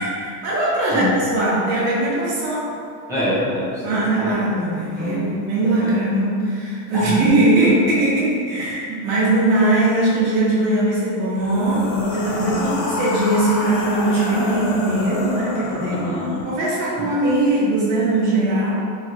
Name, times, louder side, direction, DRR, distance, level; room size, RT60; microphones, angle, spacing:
voice 1, 0.0-2.7 3.8-16.1 16.4-18.7, right 1 dB, 80° right, -7 dB, 1.0 m, -20 dB
voice 2, 3.1-3.8 4.2-4.3 5.0-5.2 5.8-6.0 6.9-7.1 12.6-12.9 15.9-16.4 17.0-17.1, left 1 dB, 5° right, -10 dB, 0.6 m, -25 dB
sound 1, 11.3-16.6, left 2 dB, 85° left, 0.8 m, -28 dB
3.0 x 2.6 x 2.6 m, 2.4 s
cardioid pair, 160°, 45 cm